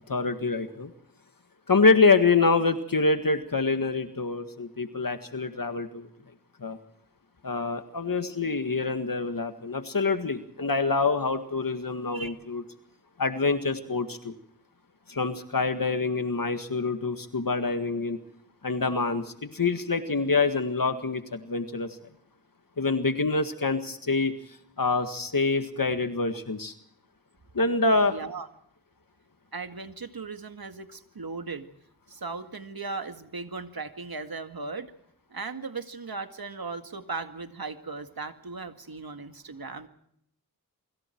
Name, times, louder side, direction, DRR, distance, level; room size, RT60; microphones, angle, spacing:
voice 1, 0.1-0.9 1.7-6.1 6.6-6.8 7.4-12.6 13.2-14.3 15.1-18.2 18.6-22.0 22.8-24.4 24.8-26.7 27.5-28.2, left 3 dB, 65° left, 8 dB, 1.8 m, -26 dB
voice 2, 27.9-28.5 29.5-31.7 32.1-34.9 35.3-39.9, right 4 dB, 75° right, 8 dB, 2.1 m, -37 dB
27.5 x 25.0 x 4.6 m, 0.71 s
wide cardioid pair, 45°, 36 cm